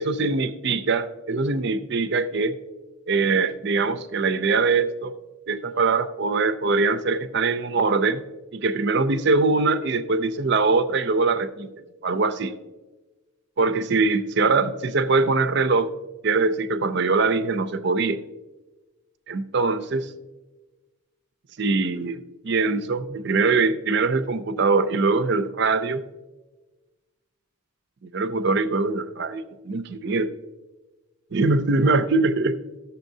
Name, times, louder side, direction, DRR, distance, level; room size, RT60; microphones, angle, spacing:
voice 1, 0.0-2.6 3.1-5.1 5.5-8.2 8.5-11.7 12.0-12.5 13.6-15.9 16.2-18.2 19.3-20.1 21.6-26.0 28.0-30.3 31.3-32.6, right 3 dB, 50° right, 11 dB, 0.5 m, -22 dB
14.5 x 6.8 x 2.7 m, 1.2 s
head